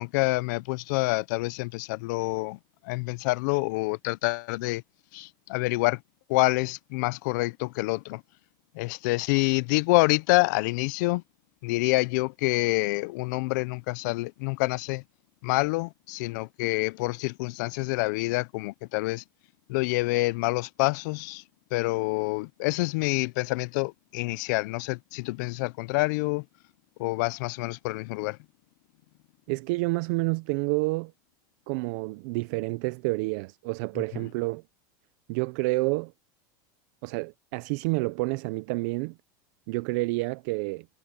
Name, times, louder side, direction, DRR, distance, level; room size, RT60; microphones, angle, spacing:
voice 1, 0.0-2.6 2.8-4.8 5.1-6.0 6.3-8.2 8.7-11.2 11.6-15.0 15.4-19.2 19.7-21.4 21.7-26.4 27.0-28.4, left 23 dB, 60° left, 0.6 m, -27 dB
voice 2, 29.5-31.1 31.7-34.6 35.3-36.1 37.0-39.2 39.7-40.9, right 25 dB, 55° right, 0.5 m, -29 dB
supercardioid pair, 155°, 11 cm